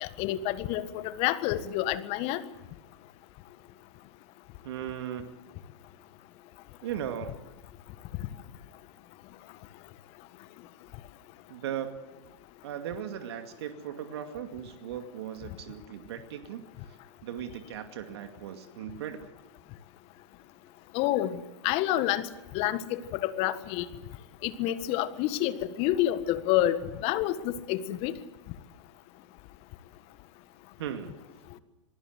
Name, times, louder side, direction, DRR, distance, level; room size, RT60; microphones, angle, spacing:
voice 1, 0.0-2.4 20.9-22.3 22.5-23.9 24.4-28.1, left 13 dB, 40° left, 13 dB, 1.6 m, -28 dB
voice 2, 4.6-5.3 6.8-7.3 11.5-11.9 12.6-19.3 30.8-31.2, right 9 dB, 60° right, 7 dB, 2.3 m, -38 dB
26.5 x 19.0 x 8.1 m, 1.1 s
hypercardioid pair, 105°, 16 cm